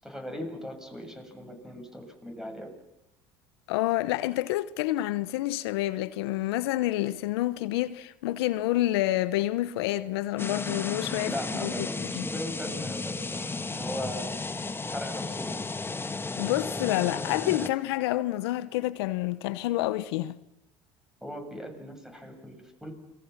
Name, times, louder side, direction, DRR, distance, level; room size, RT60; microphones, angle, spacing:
voice 1, 0.0-2.7 11.2-14.3 14.9-15.6 21.2-22.9, equal, 5° right, 7.9 m, -39 dB
voice 2, 3.7-12.2 16.4-20.4, left 16 dB, 85° left, 0.9 m, -28 dB
sound 1, 10.4-17.7, left 3 dB, 15° left, 1.4 m, -34 dB
29.0 x 22.0 x 7.4 m
supercardioid pair, 80°, 13 cm